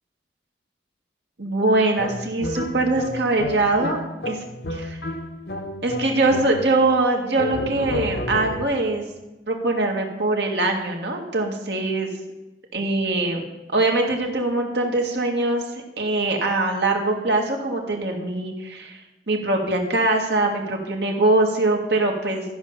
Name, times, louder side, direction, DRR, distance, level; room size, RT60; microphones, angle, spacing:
voice 1, 1.4-4.0 4.3-4.4 4.7-5.0 5.8-9.0 9.5-12.1 12.7-13.5 13.7-15.6 16.0-19.0 19.3-22.4, right 2 dB, 80° right, 1 dB, 1.9 m, -22 dB
sound 1, 2.0-6.9 7.4-8.9, left 1 dB, 70° left, 0.8 m, -31 dB
13.0 x 5.4 x 7.2 m, 1.0 s
head